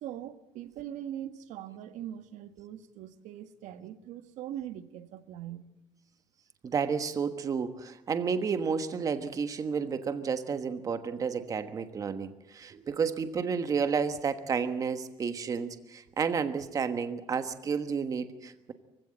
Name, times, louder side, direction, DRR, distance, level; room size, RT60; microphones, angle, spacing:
voice 1, 0.0-5.6, right 11 dB, 80° right, 10 dB, 1.6 m, -41 dB
voice 2, 6.6-18.7, right 6 dB, 30° right, 10 dB, 1.3 m, -31 dB
24.5 x 16.0 x 8.8 m, 0.90 s
cardioid pair, 175°, 12 cm